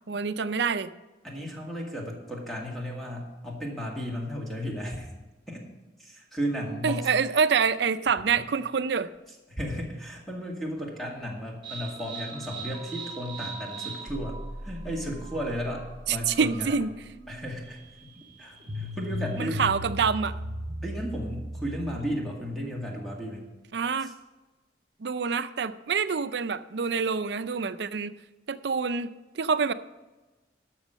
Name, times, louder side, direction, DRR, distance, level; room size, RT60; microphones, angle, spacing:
voice 1, 0.1-0.9 6.8-9.1 16.3-16.9 19.4-20.3 23.7-24.1 25.0-28.1 28.5-29.7, right 5 dB, 65° right, 12 dB, 0.5 m, -26 dB
voice 2, 1.2-5.1 5.5-5.6 6.0-7.1 9.5-16.8 17.3-18.1 18.4-19.6 20.8-23.5 24.0-24.1, equal, ahead, -2 dB, 2.0 m, -34 dB
sound 1, 11.6-22.2, right 1 dB, 25° right, 2.2 m, -38 dB
12.5 x 6.3 x 6.3 m, 1.2 s
head